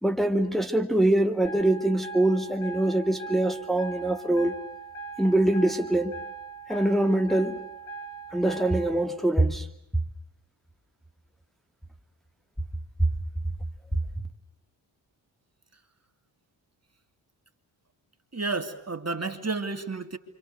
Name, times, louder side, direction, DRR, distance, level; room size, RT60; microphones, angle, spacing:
voice 1, 0.0-4.6 5.2-6.2 6.7-7.6 8.3-9.7, right 1 dB, ahead, 2.6 m, -24 dB
sound 1, 1.4-9.0, right 4 dB, 80° left, 6.9 m, -41 dB
voice 2, 18.3-20.2, right 3 dB, 30° right, 3.0 m, -31 dB
28.5 x 26.5 x 6.8 m
cardioid pair, 55°, 48 cm